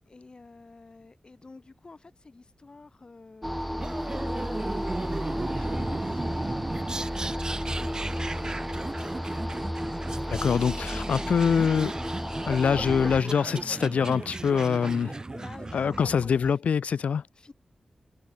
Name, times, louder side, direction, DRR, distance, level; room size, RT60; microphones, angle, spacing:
voice 1, 0.1-4.8 5.2-9.1 15.3-16.5 17.3-17.5, left 3 dB, 40° left, 6.2 m, -50 dB
sound 1, 3.4-13.2, equal, ahead, 2.5 m, -33 dB
sound 2, 3.8-16.5, right 2 dB, 30° right, 3.0 m, -36 dB
voice 2, 10.3-11.9 12.5-15.2 15.7-17.2, left 6 dB, 90° left, 0.3 m, -24 dB
wide cardioid pair, 80°, 2 cm